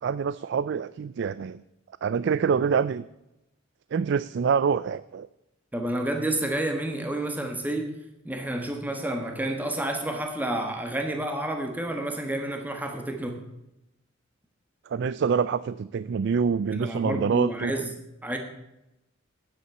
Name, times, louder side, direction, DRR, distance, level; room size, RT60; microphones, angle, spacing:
voice 1, 0.0-1.6 2.0-3.1 3.9-5.3 14.9-17.9, right 6 dB, 60° right, 17 dB, 0.3 m, -26 dB
voice 2, 5.7-7.9 8.2-13.3 16.7-17.9 18.2-18.4, right 1 dB, 10° right, 4 dB, 1.4 m, -29 dB
9.6 x 8.4 x 8.2 m, 0.90 s
head